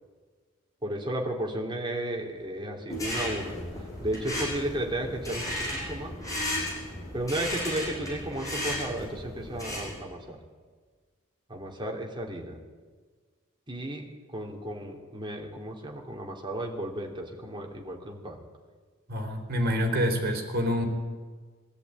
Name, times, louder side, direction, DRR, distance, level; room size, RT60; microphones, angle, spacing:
voice 1, 0.8-3.6 4.0-6.2 7.1-10.4 11.5-12.6 13.7-18.4, right 1 dB, 25° right, 2 dB, 3.1 m, -34 dB
sound 1, 2.9-10.0, left 1 dB, 15° left, 7.2 m, -34 dB
voice 2, 19.1-20.9, equal, 50° right, 4 dB, 3.7 m, -27 dB
22.0 x 13.5 x 9.5 m, 1.5 s
head